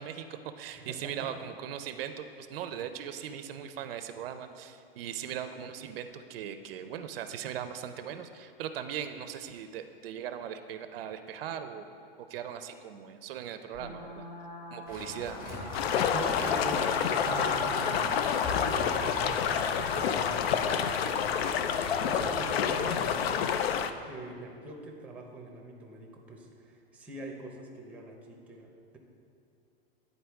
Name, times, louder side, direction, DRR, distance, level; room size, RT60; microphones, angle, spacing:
voice 1, 0.0-11.9 12.3-14.3 14.7-15.4, right 9 dB, 75° right, 9 dB, 0.5 m, -39 dB
voice 2, 0.8-1.3 16.1-23.6 24.0-29.0, right 1 dB, 5° right, 1 dB, 0.6 m, -43 dB
sound 1, 13.7-22.6, left 2 dB, 60° left, 0.9 m, -39 dB
sound 2, 14.9-23.1, left 2 dB, 30° left, 1.3 m, -41 dB
sound 3, 15.7-23.9, left 8 dB, 90° left, 0.5 m, -29 dB
10.0 x 4.1 x 3.4 m, 2.6 s
supercardioid pair, 140°, 30 cm